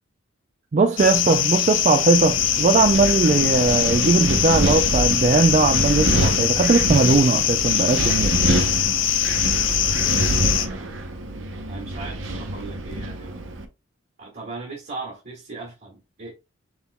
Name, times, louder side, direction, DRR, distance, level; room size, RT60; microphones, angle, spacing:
voice 1, 0.7-8.4, right 3 dB, 40° right, 0.4 m, -19 dB
sound 1, 1.0-10.7, left 10 dB, 80° left, 0.7 m, -22 dB
Wind, 2.1-13.6, right 1 dB, 85° right, 0.9 m, -26 dB
voice 2, 9.9-11.0 11.7-13.4 14.2-16.3, right 3 dB, 55° right, 2.2 m, -38 dB
5.9 x 3.7 x 2.3 m
head